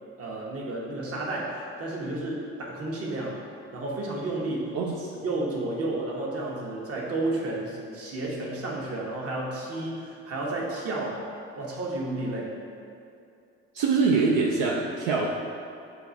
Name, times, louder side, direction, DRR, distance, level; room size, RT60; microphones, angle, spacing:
voice 1, 0.2-3.4 3.7-4.7 5.2-11.2 11.6-12.6, right 2 dB, 50° right, -3 dB, 1.0 m, -32 dB
voice 2, 13.7-15.3, right 4 dB, 80° right, -2 dB, 0.5 m, -23 dB
6.8 x 2.4 x 2.6 m, 2.6 s
supercardioid pair, 65°, 30 cm